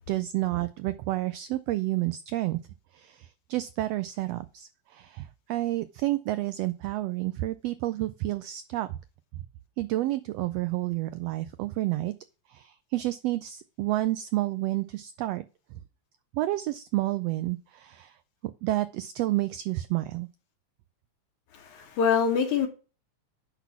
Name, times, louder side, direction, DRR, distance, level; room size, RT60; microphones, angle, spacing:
voice 1, 0.1-2.6 2.9-9.0 9.8-12.1 12.5-15.5 16.3-18.2 18.6-20.3, right 16 dB, 85° right, 1.4 m, -30 dB
voice 2, 21.5-22.7, left 6 dB, 80° left, 2.8 m, -25 dB
10.0 x 4.1 x 5.7 m
omnidirectional pair, 3.4 m